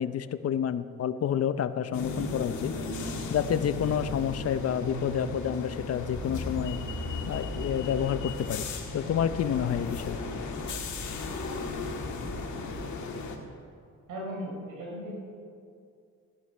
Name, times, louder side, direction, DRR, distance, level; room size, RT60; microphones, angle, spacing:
voice 1, 0.0-2.7 3.3-6.8 7.3-8.7 8.9-10.2, left 9 dB, 55° left, 13 dB, 0.8 m, -29 dB
sound 1, 1.9-13.4, left 3 dB, 70° left, 2.0 m, -36 dB
sound 2, 6.1-12.8, left 1 dB, 5° left, 3.3 m, -39 dB
voice 2, 14.1-15.2, equal, 85° right, -3 dB, 4.5 m, -37 dB
17.0 x 11.0 x 5.6 m, 2.3 s
cardioid pair, 90°, 30 cm